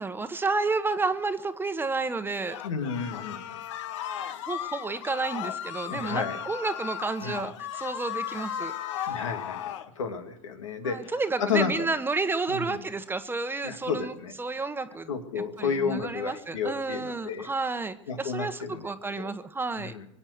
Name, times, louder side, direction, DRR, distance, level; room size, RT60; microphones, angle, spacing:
voice 1, 0.0-2.6 4.5-8.7 9.0-9.2 10.8-15.1 15.4-19.9, right 3 dB, 15° right, 10 dB, 1.1 m, -31 dB
sound 1, 2.5-9.9, left 10 dB, 70° left, 1.2 m, -36 dB
voice 2, 2.6-3.6 4.2-4.4 5.8-6.4 7.2-7.5 9.1-11.1 11.4-11.9 12.5-12.8 13.6-14.3 15.1-17.5 18.1-19.2 19.8-20.1, left 6 dB, 85° left, 5 dB, 2.3 m, -32 dB
23.5 x 8.8 x 6.6 m, 0.82 s
hypercardioid pair, 100°, 16 cm